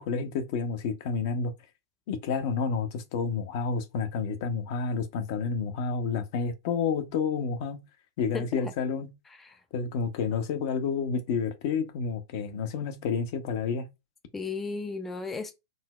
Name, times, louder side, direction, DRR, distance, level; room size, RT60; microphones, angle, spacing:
voice 1, 0.0-1.5 2.1-7.8 8.2-9.1 9.7-13.9, left 5 dB, 55° left, 0.6 m, -30 dB
voice 2, 8.3-8.7 9.3-9.6 14.3-15.5, left 4 dB, 10° left, 0.3 m, -35 dB
3.9 x 2.0 x 2.3 m
hypercardioid pair, 120°, 2 cm